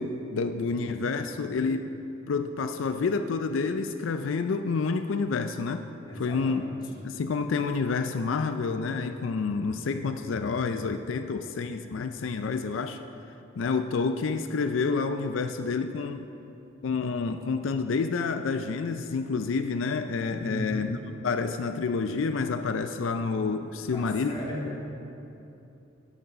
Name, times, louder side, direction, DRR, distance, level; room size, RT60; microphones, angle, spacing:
voice 1, 0.0-1.9 2.3-5.9 6.2-6.6 7.0-13.0 13.6-16.2 16.8-21.0 21.2-24.3, left 4 dB, 90° left, 8 dB, 0.4 m, -29 dB
voice 2, 6.0-6.8 20.4-20.9 23.8-24.9, left 1 dB, 25° left, -5 dB, 2.2 m, -36 dB
12.5 x 6.6 x 5.6 m, 2.9 s
head